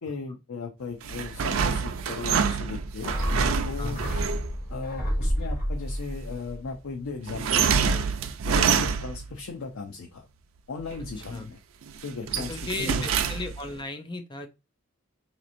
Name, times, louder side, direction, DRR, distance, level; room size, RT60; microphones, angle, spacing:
voice 1, 0.0-3.1 3.6-4.0 4.7-8.0 8.4-10.3 10.7-11.6 12.0-13.1, left 4 dB, 90° left, 0.5 m, -37 dB
sound 1, 1.0-4.5 7.3-9.3 10.8-11.4 11.8-13.7, right 6 dB, 80° right, 0.4 m, -27 dB
sound 2, 3.0-7.6 7.9-8.0, equal, 45° left, 1.3 m, -30 dB
voice 2, 3.8-4.3 8.7-9.0 11.3-11.5 12.5-14.5, left 3 dB, 20° left, 0.4 m, -36 dB
4.1 x 2.9 x 2.5 m
head